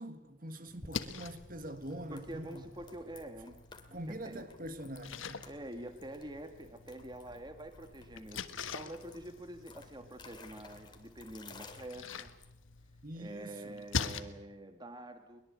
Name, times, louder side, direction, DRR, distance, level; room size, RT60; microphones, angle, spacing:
voice 1, 0.0-2.6 3.9-5.5 13.0-13.9, right 1 dB, 45° right, 1.7 m, -44 dB
Splash splatter, 0.7-14.2, left 5 dB, 75° left, 1.4 m, -44 dB
sound 1, 0.8-12.8, left 3 dB, 20° left, 2.4 m, -56 dB
voice 2, 2.1-3.6 3.9-4.5 5.5-12.3 13.2-15.4, right 1 dB, 20° right, 1.5 m, -46 dB
22.5 x 22.0 x 8.6 m
head